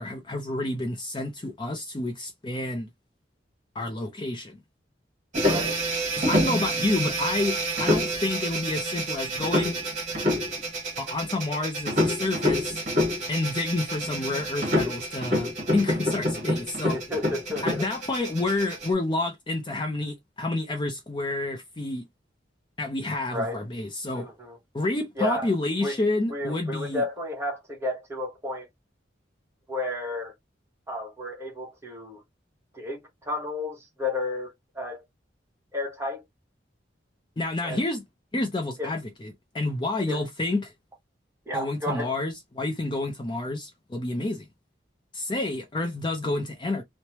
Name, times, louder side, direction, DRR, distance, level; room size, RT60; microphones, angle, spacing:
voice 1, 0.0-2.9 3.8-4.6 6.2-9.8 11.0-12.8 13.3-17.0 17.6-22.0 22.8-24.3 24.7-27.0 37.4-38.0 38.3-40.7 41.5-44.5 45.1-46.8, left 2 dB, 25° left, 0.5 m, -29 dB
sound 1, 5.3-18.9, equal, 40° right, 1.2 m, -27 dB
voice 2, 5.4-5.8 16.9-17.9 23.3-23.6 24.1-24.6 25.2-25.5 25.8-25.9 26.3-28.7 29.7-30.3 30.9-32.2 32.7-35.0 35.7-36.2 37.6-37.8 38.8-38.9 40.1-40.2 41.5-42.1, left 1 dB, 15° right, 0.9 m, -32 dB
3.1 x 2.1 x 2.8 m
head